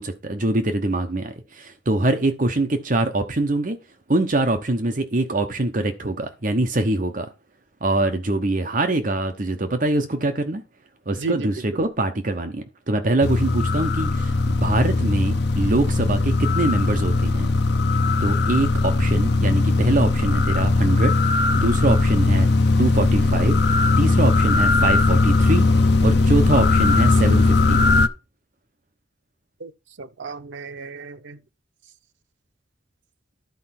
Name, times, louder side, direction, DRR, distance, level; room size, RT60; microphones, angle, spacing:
voice 1, 0.0-3.8 4.1-7.3 7.8-10.6 11.1-17.5 18.2-21.1 21.5-22.5 22.8-23.6 24.0-25.7 26.0-27.9, right 2 dB, 45° right, 0.9 m, -23 dB
voice 2, 11.2-11.6 29.6-29.7 30.0-31.4, right 4 dB, 80° right, 0.7 m, -33 dB
sound 1, 13.2-28.1, left 3 dB, 60° left, 0.6 m, -19 dB
12.0 x 4.4 x 5.9 m
head